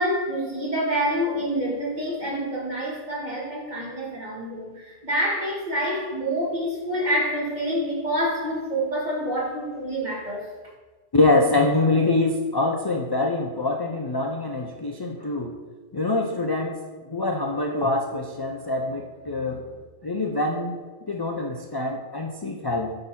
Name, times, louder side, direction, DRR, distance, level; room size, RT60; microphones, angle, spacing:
voice 1, 0.0-10.5, equal, 35° right, -5 dB, 2.1 m, -27 dB
voice 2, 11.1-15.5 15.9-19.6 20.0-20.8 21.1-23.0, left 2 dB, 35° left, 1 dB, 0.4 m, -24 dB
8.5 x 4.0 x 5.7 m, 1.3 s
omnidirectional pair, 1.3 m